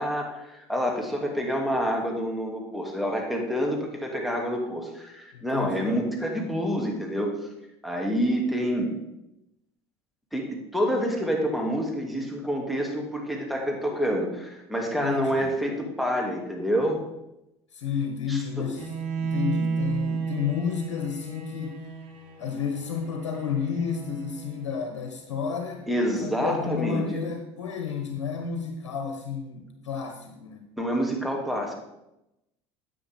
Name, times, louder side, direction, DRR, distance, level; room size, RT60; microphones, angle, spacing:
voice 1, 0.0-7.3 7.8-8.9 10.3-17.0 18.3-18.7 25.9-27.2 30.8-31.7, equal, ahead, 0 dB, 2.3 m, -27 dB
voice 2, 5.3-6.0 14.9-15.5 17.7-21.8 22.4-25.8 26.2-30.6, left 6 dB, 80° left, 3 dB, 1.1 m, -31 dB
Bowed string instrument, 18.7-24.8, right 5 dB, 70° right, 2.3 m, -33 dB
9.7 x 8.3 x 3.5 m, 0.89 s
hypercardioid pair, 75°, 15 cm